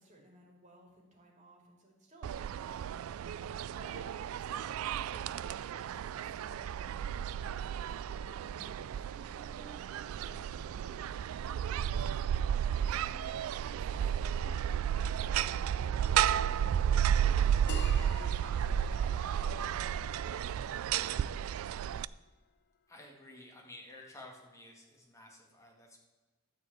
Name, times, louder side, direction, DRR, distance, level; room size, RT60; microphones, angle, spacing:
voice 1, 0.0-3.4 3.7-4.1 4.4-18.3 18.8-20.6, right 1 dB, 35° right, -1 dB, 2.6 m, -58 dB
sound 1, 2.2-22.0, right 9 dB, 80° right, 0.3 m, -33 dB
sound 2, 17.7-22.8, left 6 dB, 50° left, 0.4 m, -51 dB
voice 2, 22.9-26.0, left 1 dB, 15° left, 0 dB, 1.9 m, -52 dB
12.5 x 4.6 x 8.1 m, 1.3 s
head